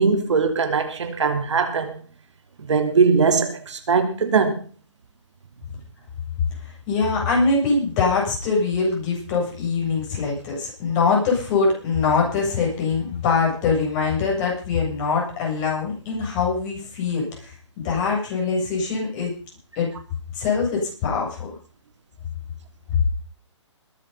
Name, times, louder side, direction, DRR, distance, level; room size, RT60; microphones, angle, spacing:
voice 1, 0.0-2.0 2.6-4.6, right 5 dB, 70° right, 3.3 m, -20 dB
voice 2, 6.9-19.3 19.8-19.9 20.3-21.5, left 4 dB, 30° left, 7.8 m, -23 dB
21.5 x 8.8 x 5.5 m
hypercardioid pair, 140°, 16 cm